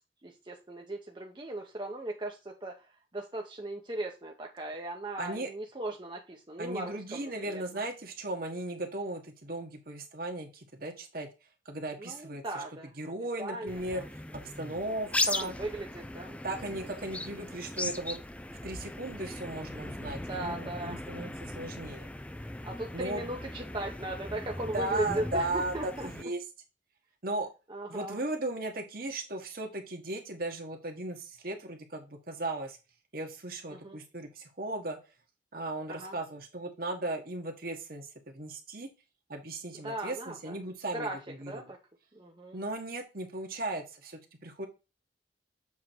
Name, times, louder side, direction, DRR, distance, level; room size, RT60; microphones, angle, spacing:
voice 1, 0.2-2.8 3.1-7.8 12.0-12.9 13.4-14.1 14.8-16.4 20.3-21.0 22.6-26.1 27.7-28.2 33.7-34.0 35.9-36.2 39.8-40.5 40.9-41.2 41.5-41.8 42.1-42.6, right 1 dB, 25° right, 0 dB, 0.9 m, -38 dB
voice 2, 5.2-5.5 6.6-11.3 11.6-12.6 13.0-15.5 16.4-18.2 18.6-22.1 22.9-23.2 24.7-26.4 27.2-27.5 27.9-32.8 33.1-35.0 35.5-38.9 39.3-41.7 42.5-44.7, right 2 dB, 55° right, 4 dB, 1.5 m, -37 dB
sound 1, 13.7-26.2, left 1 dB, 5° left, 0.4 m, -38 dB
7.4 x 3.7 x 4.4 m, 0.28 s
head